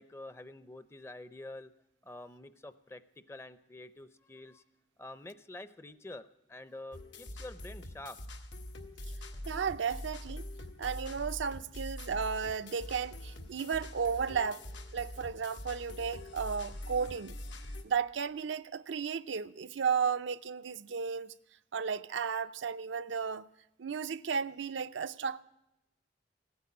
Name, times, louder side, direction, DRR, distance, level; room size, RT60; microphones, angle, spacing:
voice 1, 0.0-1.7 2.0-3.0 3.3-4.6 5.0-8.2, left 2 dB, 15° left, 0.5 m, -47 dB
sound 1, 6.9-17.8, left 1 dB, 85° left, 1.5 m, -44 dB
voice 2, 9.5-10.5 10.8-14.6 14.9-17.4 17.8-21.3 21.7-23.5 23.8-25.4, right 6 dB, 85° right, 0.5 m, -34 dB
16.0 x 9.6 x 8.5 m
head